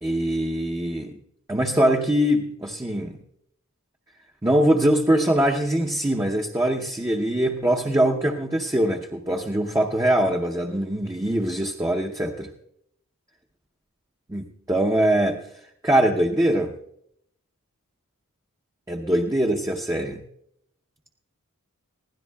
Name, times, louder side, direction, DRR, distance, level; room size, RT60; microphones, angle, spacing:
voice 1, 0.0-1.1 1.5-3.2 4.4-12.5 14.3-15.4 15.8-16.7 18.9-20.2, right 1 dB, 15° right, 1 dB, 0.7 m, -22 dB
23.5 x 16.5 x 2.3 m, 0.74 s
head